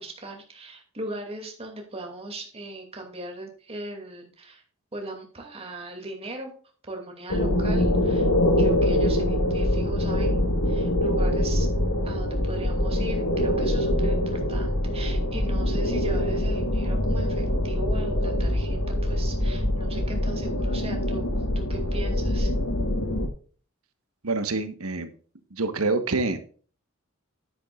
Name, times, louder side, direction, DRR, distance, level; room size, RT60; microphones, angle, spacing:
voice 1, 0.0-4.6 4.9-6.5 6.8-8.3 8.6-11.7 12.0-22.5, right 2 dB, 30° right, 2 dB, 2.6 m, -38 dB
sound 1, 7.3-23.3, left 1 dB, 70° left, 1.8 m, -24 dB
voice 2, 24.2-25.1 25.5-26.4, right 3 dB, 90° right, 9 dB, 1.3 m, -26 dB
10.0 x 10.0 x 2.5 m, 0.41 s
head